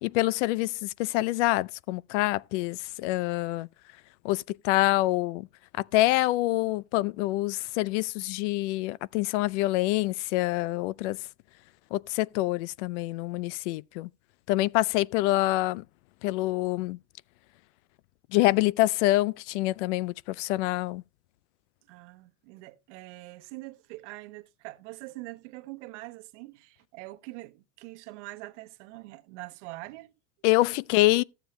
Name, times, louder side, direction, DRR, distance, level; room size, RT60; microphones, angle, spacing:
voice 1, 0.0-3.7 4.2-5.5 5.9-11.2 11.9-14.1 14.5-15.8 16.2-17.0 18.3-21.0 30.4-31.2, left 18 dB, 75° left, 0.5 m, -26 dB
voice 2, 21.9-30.1, right 20 dB, 75° right, 1.2 m, -44 dB
14.0 x 7.3 x 3.2 m
supercardioid pair, 145°, 36 cm